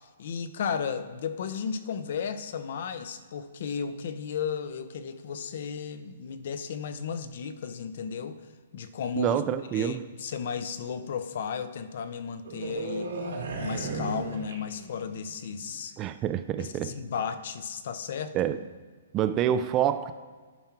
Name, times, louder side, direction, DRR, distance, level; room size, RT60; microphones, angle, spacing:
voice 1, 0.2-8.4 8.7-9.4 9.7-13.1 13.6-15.9 16.6-18.5, left 6 dB, 55° left, 11 dB, 0.7 m, -34 dB
voice 2, 9.2-10.0 16.0-16.9 18.3-18.6 19.1-20.1, right 10 dB, 20° right, 11 dB, 0.3 m, -27 dB
sound 1, 12.4-15.1 15.4-15.7, right 3 dB, 90° right, 3.0 m, -35 dB
11.0 x 4.5 x 5.9 m, 1.5 s
hypercardioid pair, 160°, 0 cm